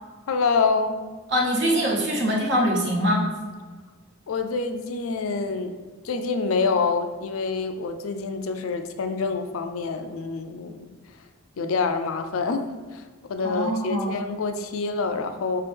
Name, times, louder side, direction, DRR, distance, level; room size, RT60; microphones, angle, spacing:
voice 1, 0.3-1.0 4.3-5.7 6.0-10.9 11.6-13.0 13.3-15.6, left 4 dB, 80° left, 7 dB, 0.4 m, -26 dB
voice 2, 1.3-3.2 13.4-14.1, equal, 55° right, -2 dB, 1.0 m, -23 dB
5.2 x 2.9 x 3.4 m, 1.4 s
head